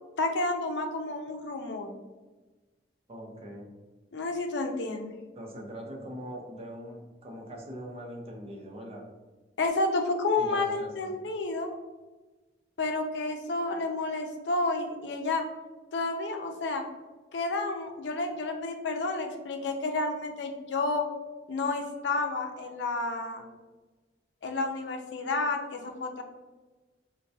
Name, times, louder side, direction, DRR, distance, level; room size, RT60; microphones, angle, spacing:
voice 1, 0.2-1.9 4.1-5.2 9.6-11.7 12.8-15.4 15.9-16.8 17.3-21.1 21.5-23.4 24.4-26.2, left 3 dB, 80° left, 4 dB, 0.5 m, -30 dB
voice 2, 3.1-3.7 5.4-9.1 10.4-11.2, equal, 35° right, -1 dB, 0.7 m, -42 dB
4.4 x 2.2 x 2.7 m, 1.2 s
head